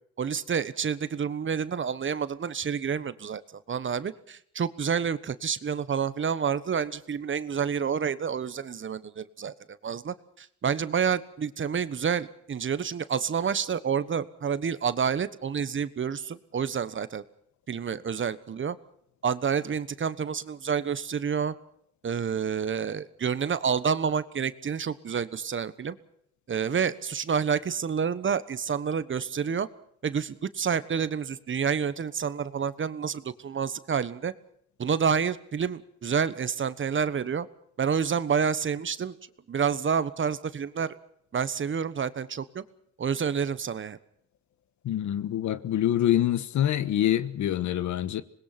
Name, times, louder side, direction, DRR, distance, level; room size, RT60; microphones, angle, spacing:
voice 1, 0.2-17.2 17.7-18.8 19.2-21.5 22.0-26.0 26.5-29.7 30.0-34.3 34.8-37.5 37.8-39.1 39.5-41.0 41.3-42.6 43.0-44.0, right 7 dB, 40° right, 1.2 m, -29 dB
voice 2, 44.8-48.2, left 12 dB, 70° left, 1.4 m, -25 dB
26.0 x 20.5 x 6.0 m
cardioid pair, 90°, 30 cm